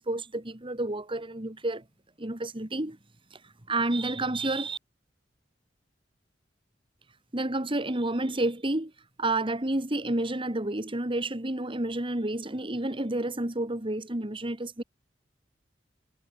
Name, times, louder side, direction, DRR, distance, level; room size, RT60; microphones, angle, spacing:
voice 1, 0.0-1.8 2.2-3.0 3.3-3.4 3.7-4.8 7.3-8.9 9.2-14.8, right 2 dB, 30° right, 2.0 m, -30 dB
head